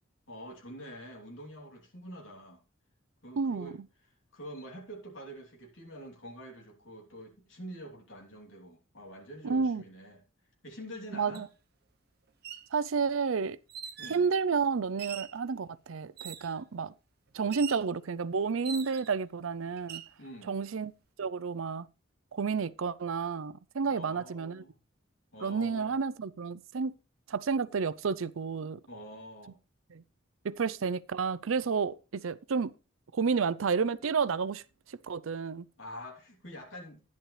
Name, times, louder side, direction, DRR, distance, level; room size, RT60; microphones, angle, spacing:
voice 1, 0.3-2.6 3.2-3.8 4.3-10.2 10.6-11.4 14.0-14.2 20.2-20.6 23.8-24.8 25.3-26.0 28.9-29.6 35.8-37.0, equal, 65° left, 3.2 m, -46 dB
voice 2, 3.4-3.7 9.4-9.8 11.1-11.5 12.7-13.6 14.1-16.9 17.3-20.0 20.5-20.9 21.2-21.9 22.3-24.6 25.4-26.9 27.3-28.8 29.9-30.0 30.4-32.7 33.1-34.6 34.9-35.6, right 5 dB, 75° right, 0.5 m, -31 dB
sound 1, 11.3-11.5 12.3-12.7 13.7-14.3 15.0-15.4 16.2-16.6 17.5-17.9 18.6-19.2 19.8-20.1, right 8 dB, 50° right, 1.0 m, -42 dB
11.5 x 10.5 x 3.2 m
head